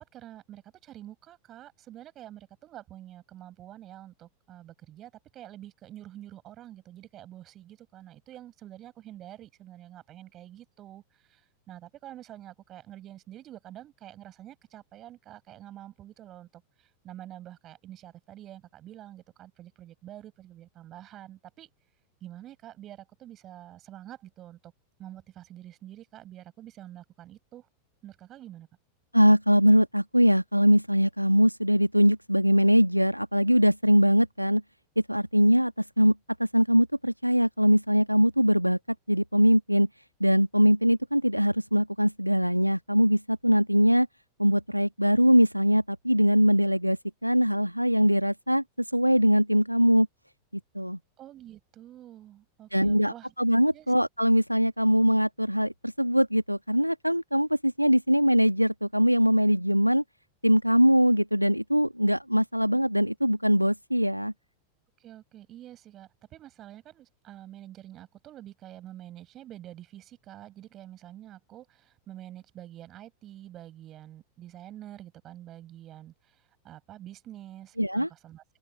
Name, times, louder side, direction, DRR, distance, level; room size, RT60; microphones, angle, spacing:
voice 1, 0.1-21.7 22.2-24.7 25.0-27.7 28.0-28.7 51.2-53.3 53.7-53.9 65.0-78.4, right 13 dB, 30° right, 7.8 m, -47 dB
voice 2, 29.1-34.6 35.1-38.8 39.1-39.9 40.2-44.1 44.4-48.6 48.9-50.1 50.7-51.0 52.7-60.0 60.4-64.3 77.8-78.1, equal, 90° right, 1.2 m, -22 dB
open air
figure-of-eight pair, 90°, 0 cm